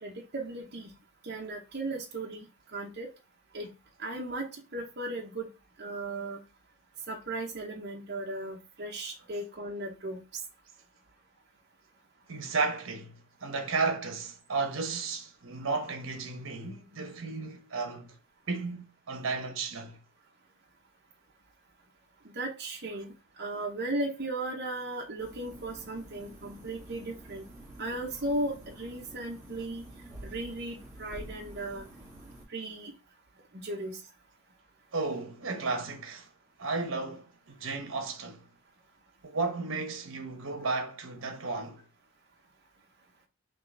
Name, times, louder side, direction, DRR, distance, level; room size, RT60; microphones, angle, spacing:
voice 1, 0.0-0.9 1.2-2.5 2.7-3.1 3.5-3.7 4.0-5.5 5.8-6.4 7.1-10.2 22.4-27.4 27.8-29.9 30.2-31.8 32.5-32.9 33.5-34.0, right 2 dB, 50° right, 0.8 m, -36 dB
voice 2, 12.3-18.1 18.5-20.0 34.9-36.3 36.6-38.5 39.2-41.8, right 4 dB, 75° right, 1.0 m, -33 dB
sound 1, 25.2-32.4, right 1 dB, 15° right, 1.4 m, -48 dB
3.7 x 3.1 x 3.7 m
head